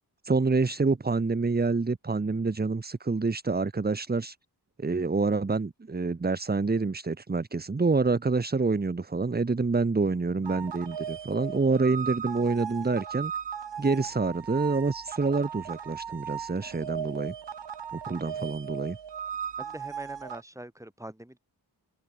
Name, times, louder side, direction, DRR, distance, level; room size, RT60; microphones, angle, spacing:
voice 1, 0.2-4.4 4.8-13.3 13.8-17.3 17.9-19.0, right 4 dB, 25° right, 0.9 m, -27 dB
sound 1, 10.4-20.4, right 8 dB, 90° right, 1.5 m, -37 dB
voice 2, 19.6-21.4, right 1 dB, 5° right, 6.2 m, -43 dB
open air
wide cardioid pair, 115°, 41 cm